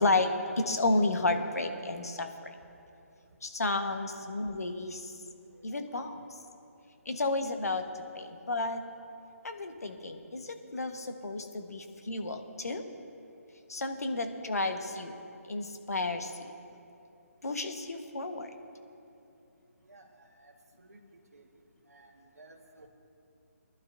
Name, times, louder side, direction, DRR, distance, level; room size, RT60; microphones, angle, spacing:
voice 1, 0.0-2.3 3.4-5.1 5.6-6.4 7.0-8.8 9.4-12.8 13.7-15.1 15.5-16.5 17.4-18.5, left 2 dB, 75° left, 6 dB, 1.2 m, -32 dB
voice 2, 19.9-20.5 20.9-21.0 21.3-21.5 21.9-22.1 22.4-22.9, right 2 dB, 75° right, 0 dB, 1.6 m, -55 dB
22.0 x 11.5 x 2.6 m, 2.8 s
figure-of-eight pair, 150°, 8 cm